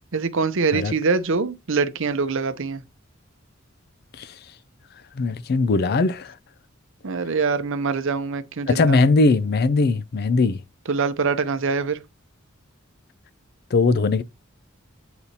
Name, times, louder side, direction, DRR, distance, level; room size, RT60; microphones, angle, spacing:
voice 1, 0.1-2.8 7.0-8.8 10.9-12.0, right 4 dB, 65° right, 0.7 m, -24 dB
voice 2, 5.2-6.3 8.7-10.6 13.7-14.2, left 3 dB, 50° left, 0.4 m, -20 dB
8.6 x 4.1 x 2.7 m
head